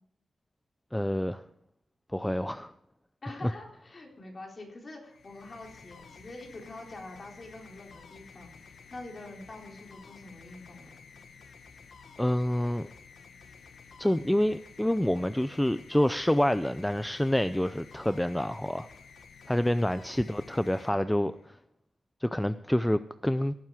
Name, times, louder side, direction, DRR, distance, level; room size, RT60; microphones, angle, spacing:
voice 1, 0.9-1.4 2.1-2.7 3.4-3.5 12.2-12.9 14.0-18.9 19.5-21.6 22.2-23.5, left 1 dB, 5° left, 12 dB, 0.4 m, -27 dB
voice 2, 3.2-8.5 8.9-10.9, left 2 dB, 35° left, 1 dB, 3.7 m, -45 dB
sound 1, 5.0-21.6, left 5 dB, 70° left, 1.1 m, -52 dB
17.5 x 9.2 x 4.8 m, 0.73 s
wide cardioid pair, 115°, 0 cm